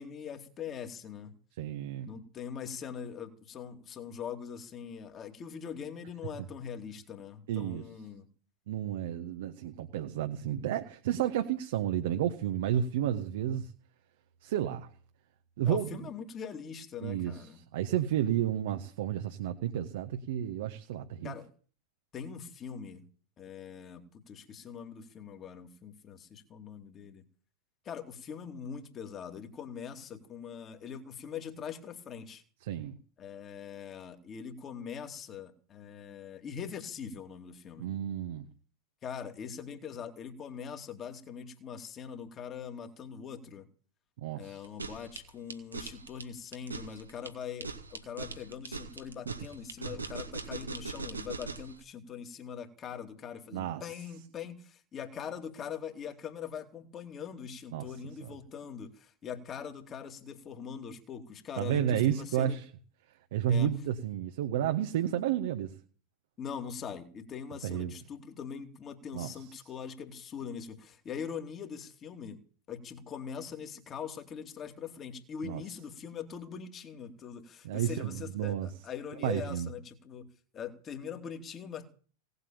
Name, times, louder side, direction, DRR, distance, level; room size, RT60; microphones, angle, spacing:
voice 1, 0.0-1.3 2.0-8.3 15.6-17.6 21.2-21.5 22.1-23.0 23.4-27.2 27.8-32.4 33.2-37.9 39.0-43.7 44.4-62.6 63.5-63.7 66.4-72.4 72.7-80.3 80.5-81.9, left 7 dB, 25° left, 5 dB, 2.7 m, -42 dB
voice 2, 1.6-2.1 7.5-7.8 8.7-13.7 14.4-14.9 15.6-16.0 17.0-17.5 17.7-21.3 32.6-33.0 37.8-38.5 44.2-44.6 49.8-49.9 53.5-53.8 57.7-57.9 58.2-58.3 61.6-62.6 63.3-65.7 67.6-67.9 69.1-69.3 75.4-75.6 77.6-78.7 79.2-79.7, right 10 dB, 55° right, 8 dB, 1.4 m, -31 dB
sound 1, 44.6-51.7, right 4 dB, 75° right, 1.8 m, -40 dB
18.0 x 8.2 x 8.7 m, 0.43 s
figure-of-eight pair, 90°, 0 cm